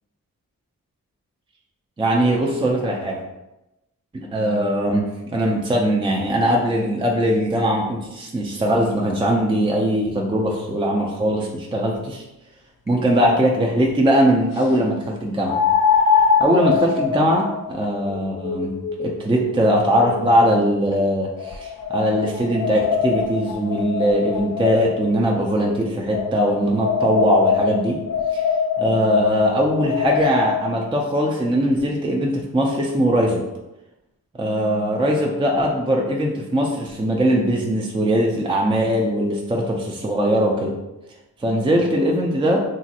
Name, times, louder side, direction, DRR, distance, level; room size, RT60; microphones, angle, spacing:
voice 1, 2.0-3.2 4.1-12.2 12.9-15.6 16.4-28.0 28.3-28.5 28.8-33.4 34.4-40.8 41.4-42.6, equal, 15° right, -1 dB, 0.4 m, -20 dB
sound 1, 12.9-13.0 15.5-20.6 21.4-25.1 26.1-30.7, left 6 dB, 60° left, 0.6 m, -23 dB
2.9 x 2.5 x 2.7 m, 0.96 s
cardioid pair, 45°, 36 cm